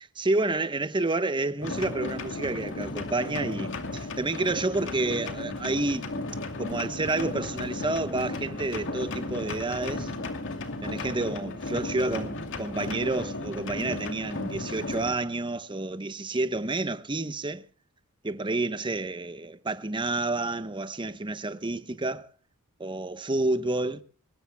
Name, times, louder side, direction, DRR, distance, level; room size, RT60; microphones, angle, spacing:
voice 1, 0.0-6.1 6.6-10.1 10.8-17.7 18.2-22.3 22.8-24.0, right 2 dB, 20° right, 0.9 m, -29 dB
sound 1, 1.6-15.1, left 2 dB, 60° left, 2.5 m, -35 dB
24.0 x 20.5 x 2.2 m
head